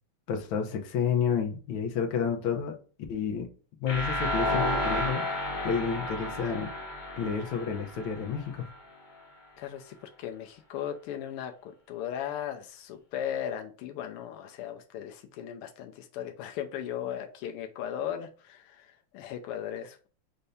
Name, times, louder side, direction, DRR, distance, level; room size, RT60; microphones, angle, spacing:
voice 1, 0.3-2.8 3.1-3.5 3.8-5.3 5.6-6.7 7.2-8.7, left 7 dB, 70° left, 1.6 m, -30 dB
sound 1, 3.9-8.7, left 1 dB, 40° left, 0.6 m, -32 dB
voice 2, 9.6-20.1, left 10 dB, 90° left, 1.6 m, -37 dB
5.5 x 2.7 x 3.4 m
omnidirectional pair, 2.4 m